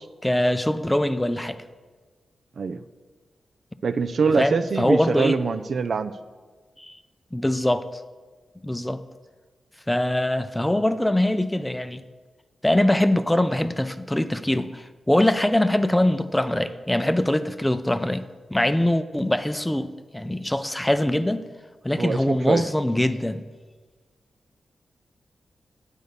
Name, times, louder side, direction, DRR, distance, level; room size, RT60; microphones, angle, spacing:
voice 1, 0.2-1.6 4.4-5.4 6.8-7.0 7.3-8.0 8.6-9.0 9.9-12.0 12.6-18.2 18.5-21.4 21.8-23.4, left 1 dB, 10° left, 0.4 m, -23 dB
voice 2, 3.8-6.1 22.0-22.6, right 5 dB, 65° right, 0.3 m, -24 dB
9.1 x 4.1 x 6.7 m
cardioid pair, 60°, 0 cm